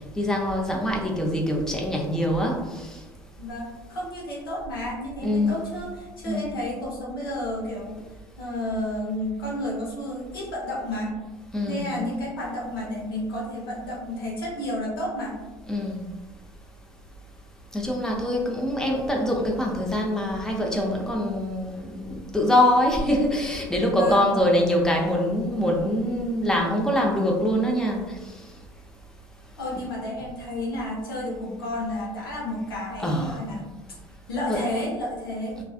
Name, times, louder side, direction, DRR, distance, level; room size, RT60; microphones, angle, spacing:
voice 1, 0.2-3.0 5.2-5.6 6.3-6.5 11.5-11.9 15.7-16.0 17.7-28.0 33.0-33.4 34.5-34.6, left 1 dB, 5° left, -1 dB, 0.5 m, -24 dB
voice 2, 3.4-8.0 8.4-11.2 11.6-15.4 23.8-24.3 29.6-34.0 34.3-35.6, left 1 dB, 85° left, -4 dB, 0.7 m, -31 dB
2.4 x 2.4 x 2.3 m, 1.2 s
hypercardioid pair, 60°, 12 cm